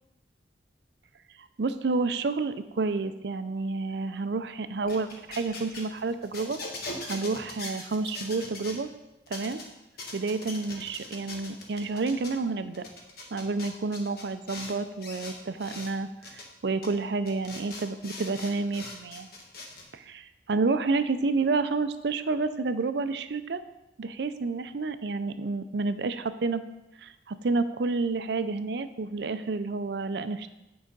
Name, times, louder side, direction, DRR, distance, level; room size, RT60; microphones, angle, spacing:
voice 1, 1.4-6.6 7.1-8.9 9.3-9.6 10.1-12.8 13.3-19.3 19.9-23.6 24.0-26.6 27.0-30.5, right 3 dB, 65° right, 11 dB, 0.5 m, -30 dB
sound 1, 4.8-8.8 9.3-9.6 10.0-12.3 12.7-14.7 15.0-15.9 16.2-16.4 16.8-16.9 17.3-19.8, left 2 dB, 55° left, 1.4 m, -41 dB
8.9 x 4.7 x 5.3 m, 0.97 s
head